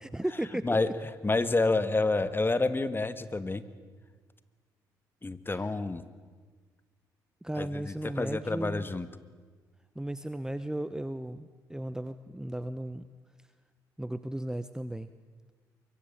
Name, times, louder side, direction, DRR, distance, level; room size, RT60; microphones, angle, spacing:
voice 1, 0.0-0.7 5.5-5.6 7.4-8.9 9.9-13.1 14.0-15.1, right 1 dB, 5° right, 13 dB, 1.0 m, -35 dB
voice 2, 1.2-3.6 5.2-6.0 7.6-9.1, left 3 dB, 20° left, 13 dB, 1.8 m, -28 dB
24.5 x 22.0 x 8.8 m, 1.5 s
hypercardioid pair, 45°, 10 cm